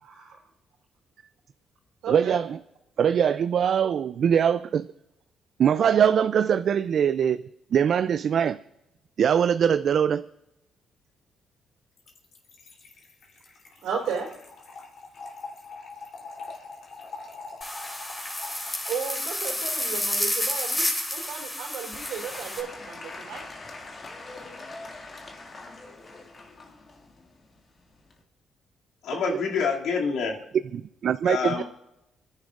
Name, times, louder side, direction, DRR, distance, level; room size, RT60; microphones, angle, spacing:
voice 1, 0.0-0.4 2.0-2.4 13.8-14.4 18.9-23.5, right 6 dB, 85° right, 1 dB, 3.7 m, -34 dB
voice 2, 2.1-2.6 3.0-4.9 5.6-7.4 7.7-8.6 9.2-10.3 29.3-29.4 30.7-31.6, right 8 dB, 60° right, 13 dB, 0.3 m, -22 dB
Trickle dribble / Fill (with liquid), 12.0-19.3, left 3 dB, 60° left, 3.2 m, -43 dB
sound 1, 17.6-22.6, left 1 dB, 20° left, 3.1 m, -30 dB
Applause / Crowd, 21.9-28.2, left 2 dB, 40° left, 2.1 m, -43 dB
voice 3, 29.0-30.4 31.2-31.6, left 5 dB, 85° left, -2 dB, 2.5 m, -27 dB
27.0 x 10.5 x 2.5 m, 0.86 s
cardioid pair, 90°, 0 cm